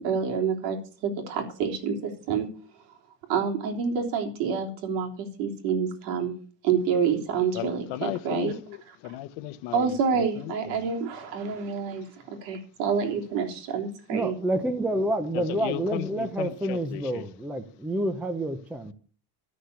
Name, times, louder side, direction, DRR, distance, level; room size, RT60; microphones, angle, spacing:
voice 1, 0.0-2.5 3.3-6.4 6.6-8.6 8.9-9.0 9.7-14.3, right 6 dB, 85° right, 3.6 m, -28 dB
voice 2, 7.5-10.8 15.3-17.2, left 15 dB, 55° left, 1.0 m, -36 dB
voice 3, 14.1-18.9, right 1 dB, 5° right, 0.5 m, -28 dB
13.0 x 6.6 x 8.2 m
cardioid pair, 170°, 49 cm